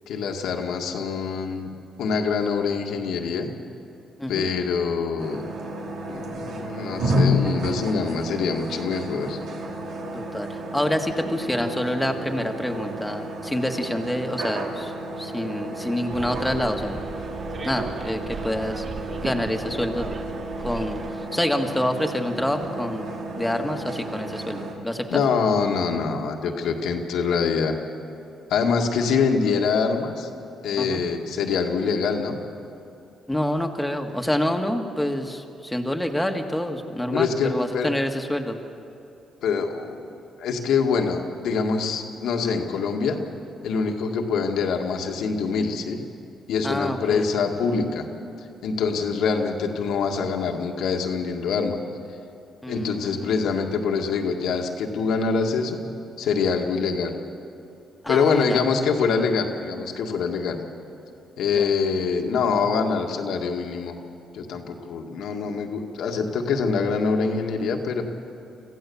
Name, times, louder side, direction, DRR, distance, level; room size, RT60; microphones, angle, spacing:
voice 1, 0.1-1.7 2.0-3.5 4.3-5.4 6.1-9.4 25.1-27.8 28.5-30.3 30.6-32.4 37.1-37.9 39.4-40.1 40.4-43.2 43.6-46.0 46.5-48.1 48.6-51.8 52.7-55.8 56.2-57.1 58.1-60.6 61.4-63.9 64.3-68.0, left 5 dB, 80° left, 2 dB, 2.0 m, -24 dB
sound 1, 5.2-24.7, equal, 75° right, 2.9 m, -31 dB
voice 2, 10.1-14.9 15.2-17.0 17.6-18.8 19.2-20.1 20.6-21.0 21.3-23.1 23.4-25.2 30.8-31.0 33.3-38.6 46.6-47.3 52.6-53.4 58.0-58.6 61.6-61.7, left 1 dB, 5° left, 4 dB, 1.8 m, -27 dB
Bus, 16.1-21.1, right 5 dB, 40° right, 0.8 m, -37 dB
25.5 x 15.5 x 7.2 m, 2.7 s
cardioid pair, 90°, 0 cm